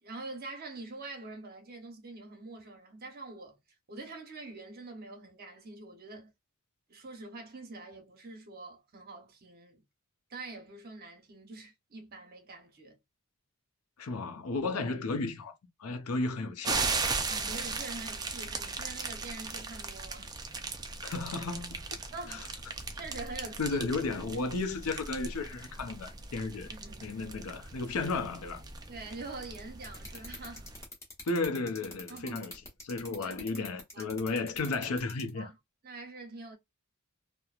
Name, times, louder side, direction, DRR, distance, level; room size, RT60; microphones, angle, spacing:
voice 1, 0.0-3.6 3.9-6.3 6.9-9.8 10.3-13.0 17.3-20.4 22.0-22.5 22.9-23.8 26.7-27.1 28.9-30.7 32.1-32.4 33.2-33.4 33.9-34.2 35.3-35.6 35.8-36.6, right 3 dB, 45° right, 0.9 m, -45 dB
voice 2, 14.0-15.5 15.8-16.9 21.0-21.8 22.3-22.4 23.6-26.7 27.0-28.6 31.2-32.5 32.8-35.5, left 3 dB, 90° left, 0.6 m, -33 dB
sound 1, 16.6-30.8, right 4 dB, 20° right, 0.3 m, -38 dB
sound 2, 29.8-35.3, left 2 dB, 15° left, 0.9 m, -44 dB
2.9 x 2.1 x 2.4 m
head